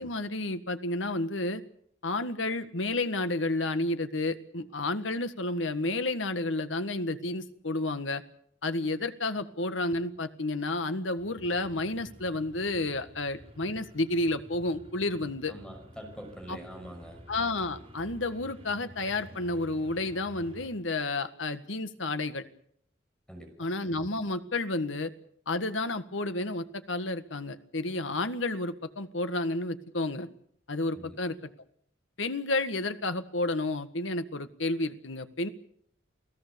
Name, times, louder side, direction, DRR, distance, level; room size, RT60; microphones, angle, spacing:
voice 1, 0.0-1.6 2.0-8.2 8.6-15.5 16.5-16.6 17.3-22.4 23.6-25.1 25.5-30.3 30.7-31.5 32.2-35.5, left 2 dB, 90° left, 10 dB, 1.7 m, -31 dB
sound 1, 11.2-20.7, equal, 30° right, 5.0 m, -51 dB
voice 2, 15.5-17.2 23.3-23.7 30.9-31.2, equal, 5° left, 4 dB, 5.9 m, -44 dB
29.0 x 18.0 x 7.0 m, 0.68 s
head